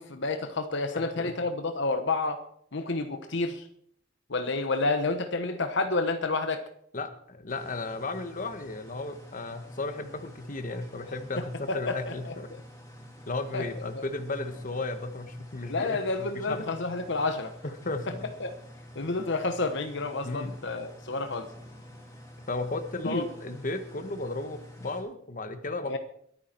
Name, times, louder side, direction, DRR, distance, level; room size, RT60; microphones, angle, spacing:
voice 1, 0.0-2.4 2.7-3.7 4.3-6.6 11.7-12.6 13.5-13.8 15.7-17.5 18.4-18.6 18.9-21.5 23.0-23.3 25.9-26.0, left 3 dB, 65° left, 8 dB, 1.1 m, -30 dB
voice 2, 0.9-1.3 6.9-12.5 13.3-16.7 17.6-18.3 20.2-20.6 22.5-26.0, left 2 dB, 45° left, 9 dB, 1.3 m, -35 dB
sound 1, 7.5-25.0, equal, 15° left, 4.1 m, -48 dB
22.0 x 9.5 x 4.5 m, 0.65 s
head